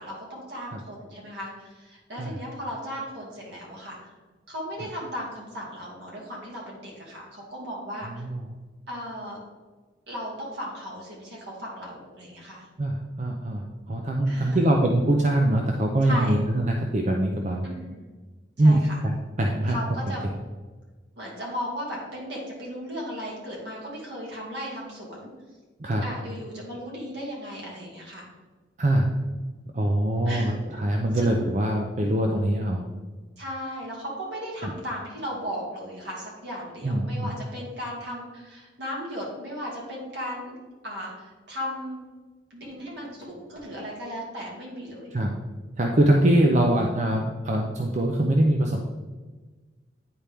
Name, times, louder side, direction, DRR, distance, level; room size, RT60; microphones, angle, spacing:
voice 1, 0.0-4.0 4.5-8.2 8.9-9.4 10.1-12.7 14.3-14.6 16.1-16.4 17.6-18.0 18.6-19.0 19.7-20.3 21.2-25.3 26.0-28.2 30.3-30.6 31.1-31.3 33.4-40.6 40.8-42.0 42.5-45.1, equal, 70° right, -4 dB, 2.3 m, -36 dB
voice 2, 8.1-8.5 12.8-17.6 18.6-19.8 25.8-26.0 28.8-29.1 29.7-32.8 36.8-37.3 45.1-45.3 45.8-48.8, right 1 dB, 40° right, 1 dB, 0.5 m, -23 dB
9.8 x 4.4 x 3.5 m, 1.3 s
head